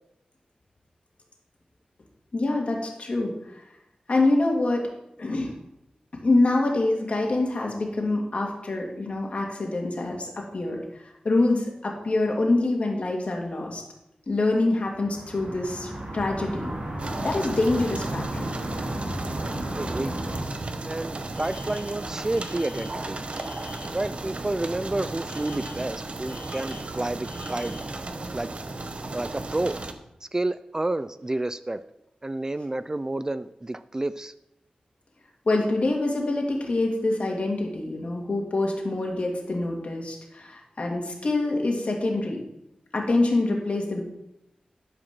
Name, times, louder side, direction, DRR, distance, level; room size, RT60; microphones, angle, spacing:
voice 1, 2.3-3.6 4.1-4.8 5.2-5.5 6.2-13.8 14.3-16.7 17.2-18.5 35.5-42.4 42.9-44.0, left 2 dB, 55° left, 0 dB, 2.3 m, -25 dB
sound 1, 14.7-20.4, right 1 dB, 70° right, 3.2 m, -34 dB
sound 2, 17.0-29.9, right 2 dB, 50° right, 0.9 m, -35 dB
voice 2, 19.7-20.1 20.8-23.2 23.9-27.8 28.3-28.5 29.1-29.8 30.2-31.8 32.2-34.3, right 2 dB, 25° right, 13 dB, 0.4 m, -30 dB
Alarm, 21.3-24.1 25.3-28.0, left 5 dB, 85° left, 2.5 m, -48 dB
12.0 x 5.0 x 6.1 m, 0.86 s
wide cardioid pair, 85°, 3 cm